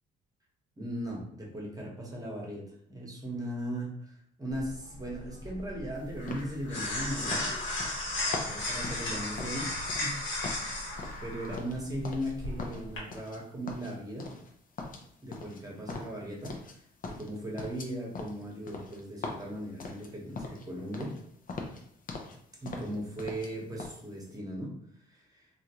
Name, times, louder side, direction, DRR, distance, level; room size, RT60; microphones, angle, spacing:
voice 1, 0.8-7.5 8.3-9.7 10.0-10.2 11.2-14.3 15.2-16.6 17.0-21.2 22.6-24.7 25.1-25.4, equal, 20° right, -2 dB, 1.1 m, -38 dB
sound 1, 4.5-13.0, left 2 dB, 75° left, 1.1 m, -35 dB
sound 2, 6.3-10.2 10.4-12.3 12.6-13.4 13.7-14.5 14.8-16.8 17.0-20.7 20.9-21.2 21.5-22.4 22.6-23.5 23.8-24.0, left 3 dB, 45° left, 0.6 m, -41 dB
3.1 x 2.6 x 2.9 m, 0.64 s
cardioid pair, 90°, 20 cm